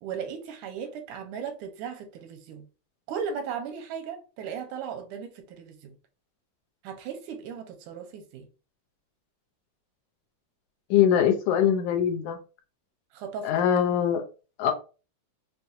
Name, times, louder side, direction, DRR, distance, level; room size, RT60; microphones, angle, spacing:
voice 1, 0.0-2.7 3.1-6.0 6.8-8.5 13.1-13.5, right 6 dB, 85° right, 2.2 m, -36 dB
voice 2, 10.9-12.4 13.4-14.2 14.6-14.7, left 9 dB, 80° left, 2.0 m, -22 dB
5.8 x 2.3 x 2.6 m
omnidirectional pair, 3.6 m